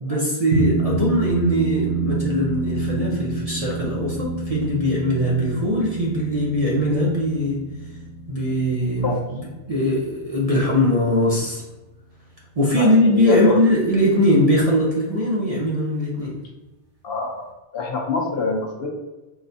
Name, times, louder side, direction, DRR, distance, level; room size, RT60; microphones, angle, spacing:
voice 1, 0.0-7.6 8.3-9.1 9.7-11.6 12.6-16.4, equal, 40° right, -4 dB, 0.6 m, -21 dB
sound 1, 0.5-11.2, right 3 dB, 75° right, 1.2 m, -28 dB
voice 2, 12.8-13.6 17.0-17.4 17.7-18.9, left 3 dB, 65° left, 0 dB, 0.8 m, -24 dB
4.0 x 3.2 x 2.7 m, 1.1 s
omnidirectional pair, 1.2 m